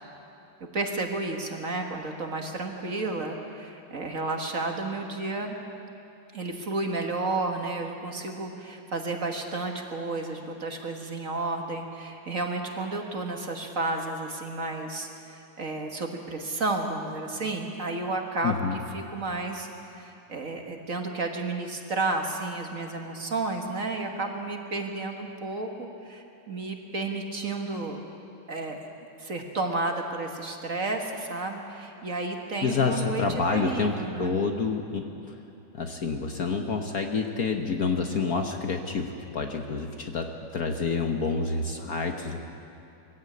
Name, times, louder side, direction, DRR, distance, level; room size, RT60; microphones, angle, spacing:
voice 1, 0.7-5.6 6.3-18.6 18.9-19.7 19.9-28.1 28.5-28.8 29.2-34.3, right 3 dB, 40° right, 3 dB, 1.7 m, -32 dB
voice 2, 18.4-18.8 32.6-33.9 34.2-35.1 35.7-42.5, left 4 dB, 50° left, 4 dB, 1.3 m, -28 dB
21.5 x 15.0 x 8.4 m, 2.8 s
omnidirectional pair, 2.3 m